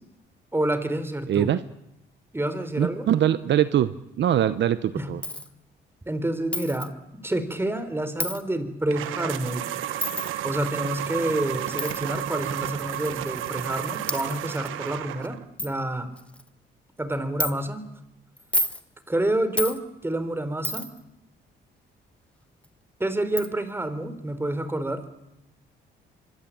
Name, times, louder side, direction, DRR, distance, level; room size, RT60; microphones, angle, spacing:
voice 1, 0.5-1.5 2.3-3.1 4.9-5.1 6.1-6.9 7.2-9.6 10.4-16.1 17.0-17.8 19.1-20.9 23.0-25.0, right 1 dB, 10° right, 11 dB, 3.9 m, -28 dB
voice 2, 1.3-1.6 2.8-5.2, right 10 dB, 65° right, 13 dB, 1.0 m, -23 dB
Coin (dropping), 5.2-5.5 6.5-6.9 8.2-8.4 10.0-10.3 11.8-12.0 12.9-13.0 13.7-13.8 14.1-14.2 14.9-15.0 15.2-15.3 15.6-15.7 16.2-16.5 17.4-17.5 18.4-18.8 19.6-19.8 20.6-21.0 22.6-22.7 23.4-23.5, left 1 dB, 5° left, 1.7 m, -29 dB
sound 1, 8.9-15.5, right 12 dB, 90° right, 1.3 m, -32 dB
25.0 x 24.5 x 8.8 m, 0.84 s
cardioid pair, 90°, 20 cm